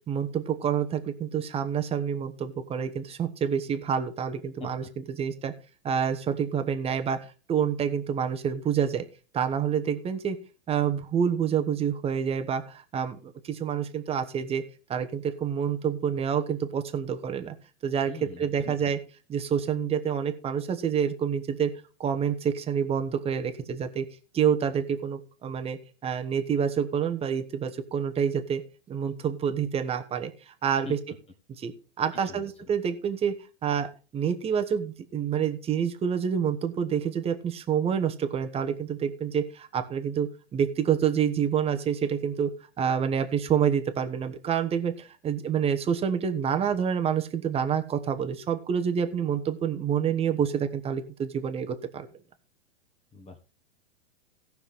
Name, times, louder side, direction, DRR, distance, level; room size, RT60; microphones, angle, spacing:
voice 1, 0.1-5.5 5.8-9.0 9.3-10.4 10.7-14.6 14.9-17.6 17.8-18.1 18.4-19.0 19.3-21.7 22.0-24.0 24.3-28.6 28.9-31.0 31.6-31.7 32.0-33.3 33.6-33.9 34.1-42.5 42.8-52.1, right 8 dB, 15° right, 8 dB, 1.0 m, -28 dB
voice 2, 18.1-18.9 30.8-30.9 32.2-32.5 53.1-53.4, left 4 dB, 15° left, 6 dB, 1.5 m, -42 dB
17.0 x 5.9 x 3.5 m, 0.35 s
hypercardioid pair, 130°, 35 cm